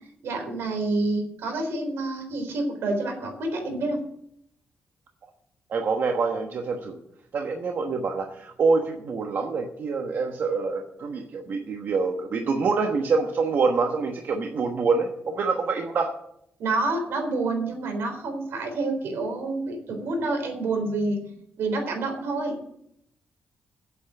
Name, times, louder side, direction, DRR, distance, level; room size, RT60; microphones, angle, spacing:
voice 1, 0.2-4.0 16.6-21.2 21.6-22.7, right 2 dB, 80° right, 3 dB, 4.0 m, -28 dB
voice 2, 5.7-7.0 7.3-16.1, right 4 dB, 55° right, 3 dB, 1.2 m, -26 dB
8.4 x 8.3 x 9.1 m, 0.73 s
cardioid pair, 125°, 4 cm